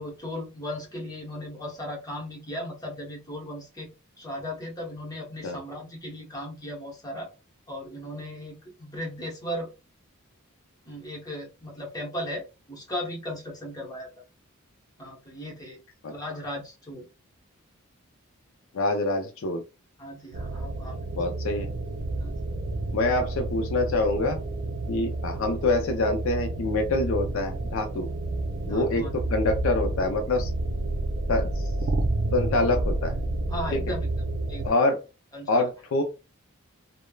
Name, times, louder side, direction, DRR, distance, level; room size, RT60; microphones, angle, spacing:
voice 1, 0.0-3.9 4.2-7.3 7.7-9.7 10.8-14.1 15.0-15.8 16.1-17.0 20.0-21.0 22.2-22.3 28.6-29.1 33.5-34.1 34.5-34.6 35.3-35.7, left 1 dB, 15° left, -3 dB, 0.9 m, -36 dB
voice 2, 18.7-19.6 21.1-21.7 22.9-24.4 24.9-28.1 28.7-29.0 29.3-30.5 31.3-31.5 32.3-33.1 33.7-33.8 34.6-35.0 35.5-36.0, left 2 dB, 65° left, 4 dB, 0.4 m, -25 dB
sound 1, 20.3-34.7, right 2 dB, 75° right, 0.6 m, -30 dB
3.1 x 2.0 x 2.2 m, 0.28 s
head